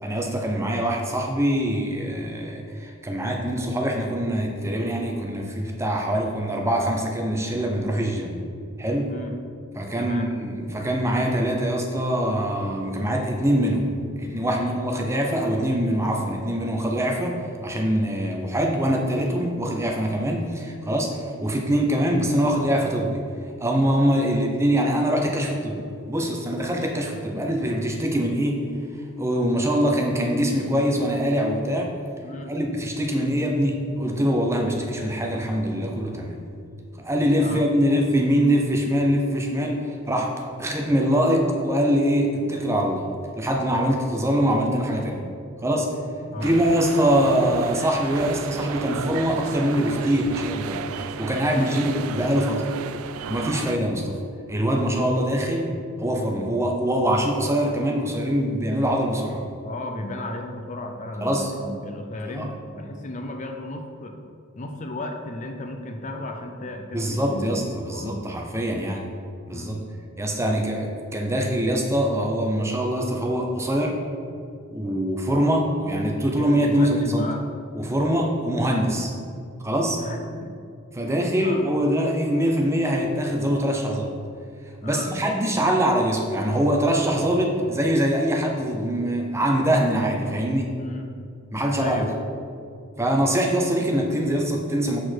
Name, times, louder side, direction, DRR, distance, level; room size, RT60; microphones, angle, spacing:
voice 1, 0.0-8.4 8.8-9.1 9.8-13.8 14.2-23.2 23.6-25.8 26.1-28.6 29.2-32.0 32.5-36.4 37.0-43.1 43.4-45.2 45.6-46.0 46.4-50.8 51.2-52.7 53.3-54.2 54.5-59.4 61.2-61.5 62.3-62.5 66.9-69.1 69.5-69.8 70.2-74.0 74.7-77.3 77.8-79.1 79.6-80.0 80.9-84.2 84.8-90.8 91.5-92.1 93.0-95.0, equal, 15° right, 1 dB, 0.6 m, -23 dB
voice 2, 10.0-10.3 14.5-14.8 24.3-24.5 32.2-32.5 37.4-37.7 46.3-46.5 51.4-51.7 59.6-64.2 64.6-67.6 67.9-68.2 69.5-69.8 70.4-70.6 76.2-77.4 78.9-79.1 80.0-80.5 81.2-81.7 84.8-85.1 90.8-91.1 91.8-92.2, left 1 dB, 35° left, 4 dB, 0.5 m, -35 dB
sound 1, 46.4-53.8, right 7 dB, 80° right, 0.3 m, -34 dB
7.9 x 4.4 x 4.5 m, 2.4 s
head